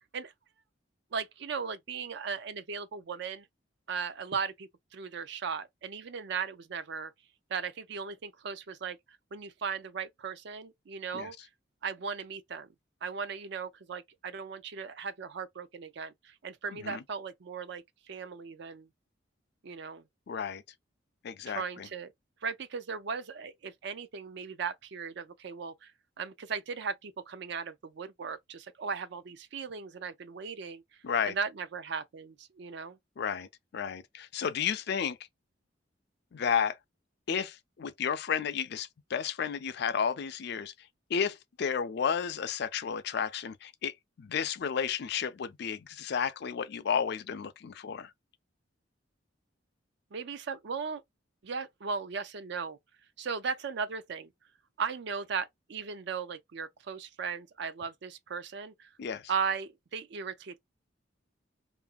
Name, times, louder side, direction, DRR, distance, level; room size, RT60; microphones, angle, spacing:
voice 1, 1.1-3.5 3.9-7.1 7.5-9.0 9.3-11.5 11.8-12.7 13.0-18.9 19.6-20.0 21.5-22.1 22.4-25.9 26.2-30.8 31.2-33.0 50.1-51.0 51.4-52.8 53.2-54.3 54.8-58.9 59.3-60.6, right 5 dB, 65° right, 0.5 m, -37 dB
voice 2, 16.7-17.0 20.3-20.6 21.2-21.9 31.0-31.3 33.2-33.5 33.7-35.2 36.3-36.8 37.3-40.7 41.1-48.1 59.0-59.2, left 7 dB, 60° left, 0.4 m, -32 dB
2.7 x 2.6 x 2.3 m
head